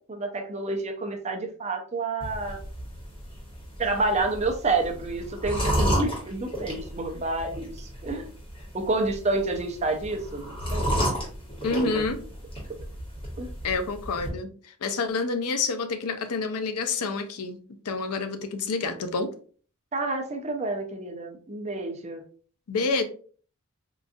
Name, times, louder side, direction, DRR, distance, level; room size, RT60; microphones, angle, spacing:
voice 1, 0.1-2.6 3.8-8.3 8.7-10.9 11.7-12.0 13.4-13.5 19.9-22.2, right 3 dB, 30° right, 3 dB, 0.5 m, -29 dB
sound 1, 2.2-14.3, equal, 25° left, 1.2 m, -32 dB
voice 2, 11.6-12.2 13.6-17.6 17.8-19.3 22.7-23.0, left 4 dB, 85° left, 8 dB, 0.5 m, -28 dB
3.8 x 2.5 x 2.5 m, 0.43 s
head